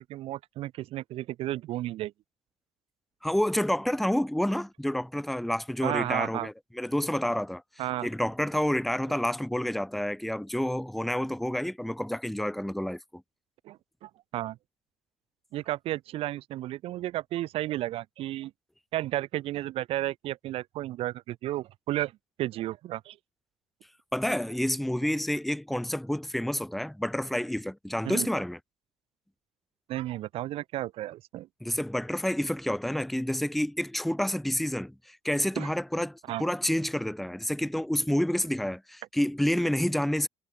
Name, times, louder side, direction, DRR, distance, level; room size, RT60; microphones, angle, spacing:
voice 1, 0.0-2.1 5.8-6.5 7.8-8.1 13.6-14.6 15.5-18.5 18.9-22.1 22.4-23.2 28.0-28.3 29.9-31.5 35.6-35.7 36.3-36.4, right 15 dB, 50° right, 1.2 m, -33 dB
voice 2, 3.2-7.6 8.0-13.2 24.1-28.6 31.6-40.3, left 1 dB, ahead, 0.9 m, -29 dB
cardioid pair, 175°, 12 cm